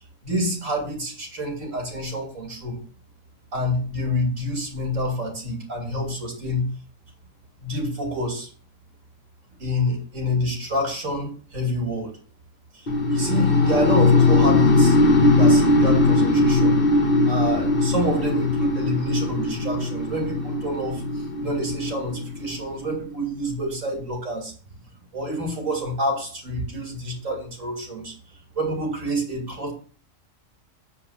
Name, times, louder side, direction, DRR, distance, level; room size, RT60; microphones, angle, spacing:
voice 1, 0.2-2.8 3.5-6.7 7.6-8.5 9.6-12.2 12.7-15.0 15.3-16.8 17.3-24.5 25.1-29.7, equal, 80° right, 1 dB, 3.2 m, -28 dB
sound 1, 12.9-22.8, left 2 dB, 45° left, 1.4 m, -19 dB
7.7 x 4.8 x 7.3 m, 0.40 s
omnidirectional pair, 1.3 m